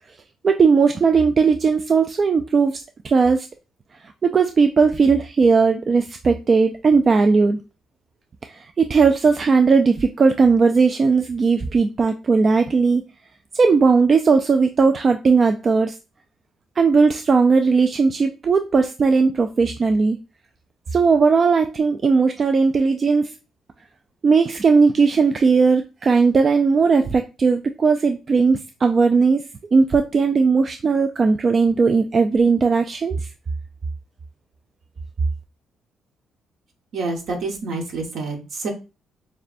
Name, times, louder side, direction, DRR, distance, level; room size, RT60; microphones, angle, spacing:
voice 1, 0.4-3.5 4.2-7.6 8.5-13.0 13.5-16.0 16.8-20.2 20.9-23.3 24.2-29.4 29.7-33.2, right 4 dB, 40° right, 6 dB, 0.3 m, -17 dB
voice 2, 36.9-38.7, right 3 dB, 70° right, 2 dB, 1.3 m, -28 dB
6.7 x 2.2 x 2.5 m, 0.29 s
cardioid pair, 90°, 0 cm